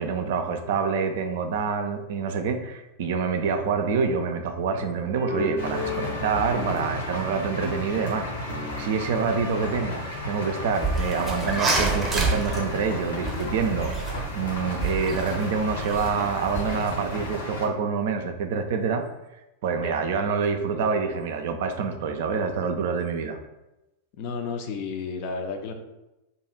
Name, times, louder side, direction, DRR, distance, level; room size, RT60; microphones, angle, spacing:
voice 1, 0.0-8.3 8.8-19.0 19.6-23.4, right 5 dB, 55° right, 6 dB, 0.4 m, -27 dB
sound 1, 5.1-10.7, left 2 dB, 90° left, 1.5 m, -37 dB
sound 2, 5.6-17.7, left 1 dB, 60° left, 0.8 m, -34 dB
sound 3, 10.7-17.4, right 3 dB, 20° right, 0.7 m, -29 dB
voice 2, 24.2-25.7, left 5 dB, 45° left, 5 dB, 0.4 m, -32 dB
2.7 x 2.3 x 4.1 m, 0.96 s
figure-of-eight pair, 90°, 0 cm